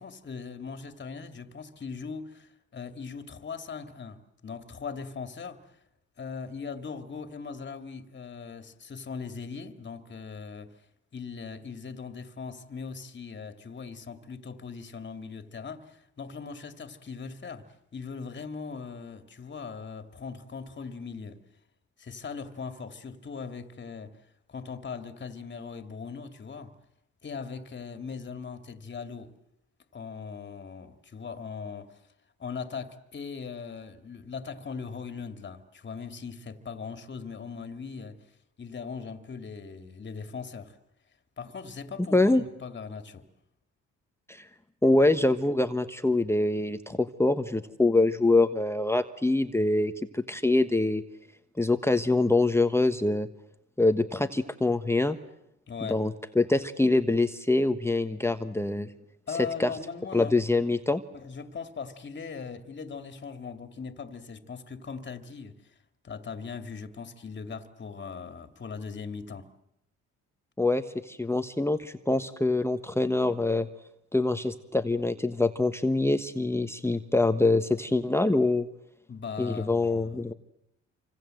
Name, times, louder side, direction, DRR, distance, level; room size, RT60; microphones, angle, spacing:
voice 1, 0.0-5.6 6.2-10.8 11.1-17.7 17.9-21.4 22.0-24.2 24.5-26.7 27.2-29.3 29.9-32.0 32.4-38.3 38.6-40.8 41.4-43.2 55.7-56.1 59.3-60.3 61.1-65.7 66.0-69.5 79.1-80.2, left 5 dB, 35° left, 2.4 m, -39 dB
voice 2, 42.1-42.4 44.3-44.4 44.8-51.0 51.6-53.3 53.8-55.2 55.9-58.9 59.6-59.7 60.1-61.0 70.6-73.7 74.1-78.7 79.4-80.3, left 2 dB, 10° left, 1.2 m, -25 dB
27.5 x 25.5 x 7.8 m
cardioid pair, 90°, 30 cm